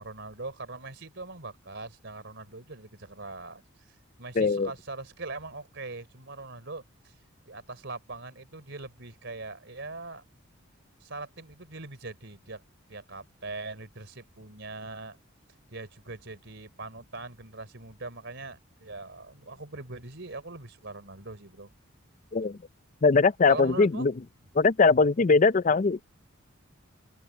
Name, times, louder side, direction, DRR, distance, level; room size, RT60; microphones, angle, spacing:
voice 1, 0.0-3.9 4.2-7.1 7.5-10.2 11.0-12.6 12.9-15.2 15.7-21.7 23.5-24.1, right 3 dB, 55° right, 3.6 m, -41 dB
voice 2, 4.4-4.7 22.3-22.6 23.0-24.1 24.6-26.0, left 4 dB, 35° left, 0.4 m, -21 dB
head